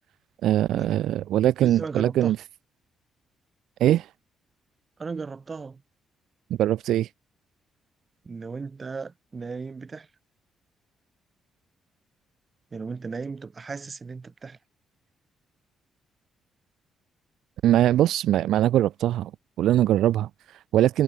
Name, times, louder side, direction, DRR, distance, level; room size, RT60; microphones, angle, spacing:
voice 1, 0.4-2.4 3.8-4.1 6.6-7.1 17.6-19.3 19.6-21.0, right 12 dB, 85° right, 0.4 m, -22 dB
voice 2, 1.6-2.3 5.0-5.8 8.2-10.1 12.7-14.6, right 4 dB, 30° right, 6.8 m, -36 dB
cardioid pair, 125°, 0 cm